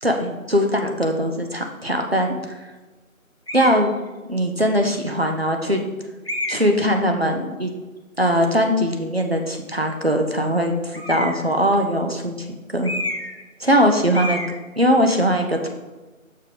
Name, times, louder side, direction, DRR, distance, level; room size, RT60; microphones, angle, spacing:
voice 1, 0.0-2.6 3.5-3.9 4.3-5.8 6.5-7.7 8.2-12.4 12.7-12.9 13.6-14.4 14.8-15.7, equal, 45° right, 3 dB, 0.9 m, -20 dB
sound 1, 3.5-3.9 4.7-4.8 6.2-6.8 10.9-11.5 12.8-13.4 13.7-13.9 14.1-14.5, left 1 dB, 45° left, 0.8 m, -29 dB
6.7 x 5.2 x 3.8 m, 1.2 s
figure-of-eight pair, 175°, 42 cm